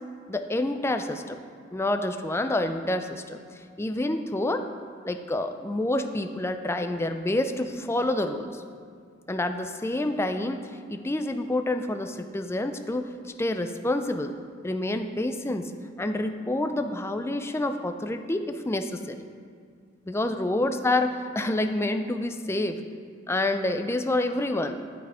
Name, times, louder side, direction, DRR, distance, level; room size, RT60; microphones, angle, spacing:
voice 1, 0.3-1.4 1.7-3.4 3.8-4.7 5.0-8.6 9.3-13.1 13.4-14.3 14.6-15.7 16.0-19.2 20.1-22.8 23.3-24.8, left 1 dB, 15° left, 7 dB, 0.5 m, -28 dB
8.8 x 8.2 x 4.9 m, 2.1 s
head